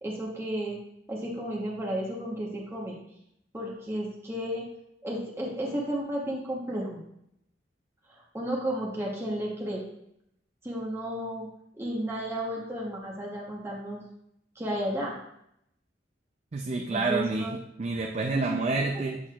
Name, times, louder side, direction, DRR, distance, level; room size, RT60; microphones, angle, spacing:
voice 1, 0.0-0.8 1.1-3.0 3.5-4.6 5.0-7.0 8.3-9.8 10.6-11.5 11.8-14.0 14.6-15.2 16.9-17.5 18.3-18.5, equal, 15° right, -4 dB, 1.0 m, -32 dB
voice 2, 16.5-17.5 17.8-19.2, right 3 dB, 35° right, 1 dB, 0.4 m, -28 dB
7.7 x 6.3 x 2.4 m, 0.77 s
head